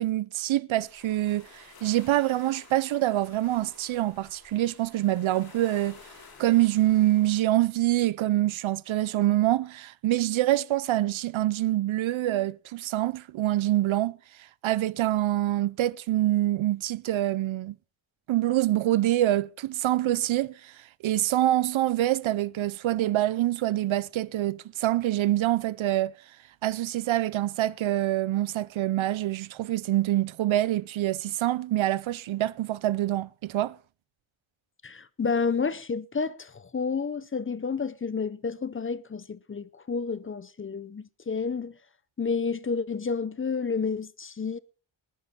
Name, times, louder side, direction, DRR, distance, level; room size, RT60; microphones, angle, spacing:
voice 1, 0.0-6.0 6.4-14.2 14.6-17.8 18.3-20.7 21.0-26.1 26.6-33.8, right 14 dB, 75° right, 0.6 m, -25 dB
sound 1, 0.8-7.4, left 4 dB, 45° left, 5.2 m, -52 dB
voice 2, 34.8-41.7 42.2-44.6, left 5 dB, 25° left, 0.6 m, -30 dB
20.5 x 10.0 x 4.3 m
wide cardioid pair, 160°, 48 cm